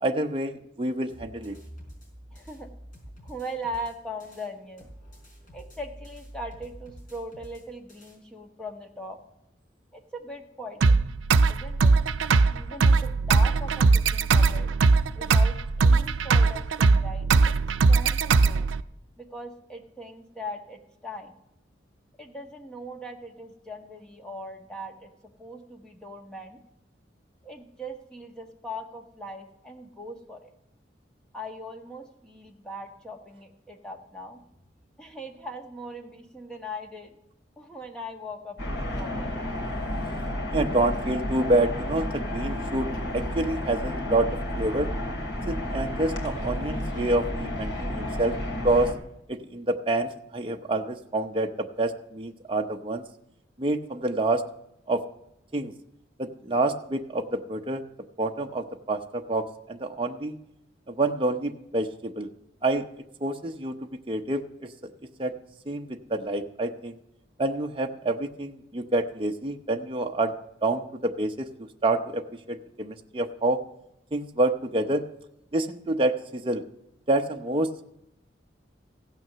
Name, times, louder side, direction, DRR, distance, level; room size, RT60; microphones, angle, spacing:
voice 1, 0.0-1.5 40.5-44.3 44.5-44.9 45.5-48.4 48.6-48.9 49.3-53.0 53.6-54.4 54.9-55.0 55.5-55.7 56.2-57.8 58.2-60.4 60.9-62.3 62.6-62.8 63.2-63.7 64.1-64.4 64.8-64.9 65.2-65.3 65.7-67.0 67.4-70.3 70.6-72.2 72.5-73.6 74.1-75.0 75.5-76.6 77.1-77.8, right 2 dB, 25° right, 3 dB, 0.7 m, -27 dB
sound 1, 1.1-4.5 4.8-8.2, equal, 45° left, 4.9 m, -47 dB
voice 2, 2.3-2.7 3.2-4.9 5.5-9.2 9.9-10.9 11.5-12.0 12.5-14.7 15.1-17.6 17.9-18.7 19.2-21.3 22.2-25.1 25.4-26.6 27.4-30.5 31.3-34.4 35.0-37.1 37.6-39.4, equal, 5° left, 2 dB, 1.3 m, -40 dB
sound 2, 10.8-18.8, right 4 dB, 90° right, 0.5 m, -20 dB
sound 3, 38.6-48.9, left 1 dB, 75° left, 3.2 m, -31 dB
15.5 x 9.2 x 6.7 m, 0.84 s
head